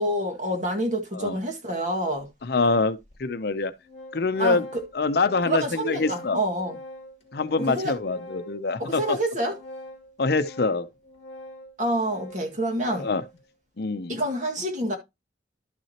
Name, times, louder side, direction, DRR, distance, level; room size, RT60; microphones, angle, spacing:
voice 1, 0.0-2.3 4.4-4.8 5.5-6.8 7.6-7.9 8.8-9.5 11.8-13.1 14.1-15.0, right 1 dB, 40° right, 1.9 m, -27 dB
Organ, 2.2-2.3 3.1-3.2 3.5-13.4, left 1 dB, 35° left, 2.4 m, -44 dB
voice 2, 2.4-3.7 4.1-4.7 4.9-6.4 7.3-9.2 10.2-10.9 12.9-13.2 13.8-14.2, left 3 dB, 55° left, 0.6 m, -25 dB
12.0 x 6.0 x 2.9 m
head